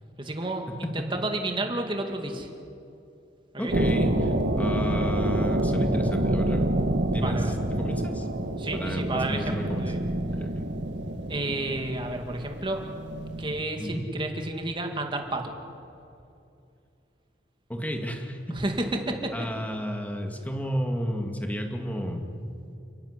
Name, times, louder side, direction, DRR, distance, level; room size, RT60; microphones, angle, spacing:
voice 1, 0.2-2.5 3.5-3.8 7.1-7.5 8.6-10.0 11.3-12.8 13.4-15.5 18.5-19.3, right 2 dB, 30° right, 4 dB, 2.4 m, -31 dB
voice 2, 3.6-6.7 7.1-8.3 8.7-9.9 10.4-10.7 13.8-14.0 17.7-18.6 19.3-22.2, equal, 10° left, 3 dB, 2.2 m, -31 dB
sound 1, 3.7-13.6, right 1 dB, 90° right, 1.9 m, -27 dB
30.0 x 11.5 x 9.8 m, 2.6 s
head